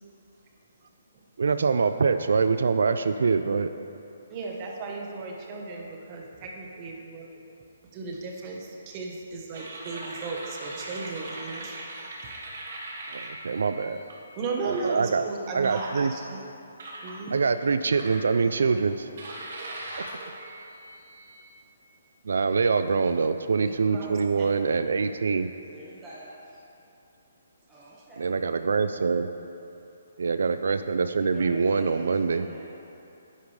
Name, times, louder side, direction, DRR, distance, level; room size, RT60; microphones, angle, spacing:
voice 1, 1.4-3.7 13.1-14.0 14.6-15.2 15.5-16.1 17.3-18.9 22.3-25.5 28.2-29.3 30.2-32.5, right 5 dB, 75° right, 10 dB, 0.3 m, -24 dB
voice 2, 4.3-7.4 7.9-11.8 14.4-16.4 17.0-17.4 23.6-24.8, right 3 dB, 30° right, 0 dB, 1.1 m, -36 dB
sound 1, 9.5-14.1 14.6-15.0 15.6-16.4 16.8-17.2 17.9-18.6 19.2-21.5, right 2 dB, 60° right, 1.9 m, -40 dB
voice 3, 18.6-19.1 23.9-24.6 25.7-26.7 27.7-28.3 31.1-32.7, right 2 dB, 10° right, -10 dB, 1.2 m, -46 dB
10.0 x 8.2 x 3.2 m, 2.9 s
hypercardioid pair, 155°, 0 cm